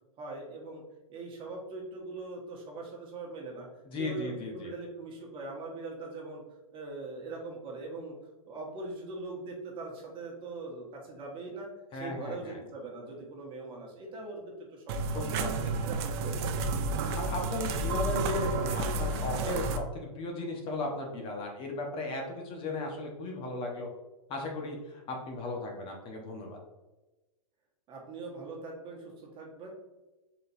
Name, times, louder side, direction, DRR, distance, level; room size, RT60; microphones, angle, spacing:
voice 1, 0.2-0.8 1.1-3.7 4.0-6.4 6.7-8.2 8.5-15.5 15.8-16.5 27.9-29.7, right 3 dB, 30° right, -1 dB, 1.2 m, -41 dB
voice 2, 3.9-4.7 11.9-12.6 15.1-15.7 17.1-19.7 19.9-23.9 24.3-26.6, left 2 dB, 30° left, 1 dB, 0.9 m, -36 dB
sound 1, 14.9-19.8, right 3 dB, 45° right, 0.5 m, -31 dB
4.1 x 3.9 x 2.6 m, 1.1 s
hypercardioid pair, 125°, 18 cm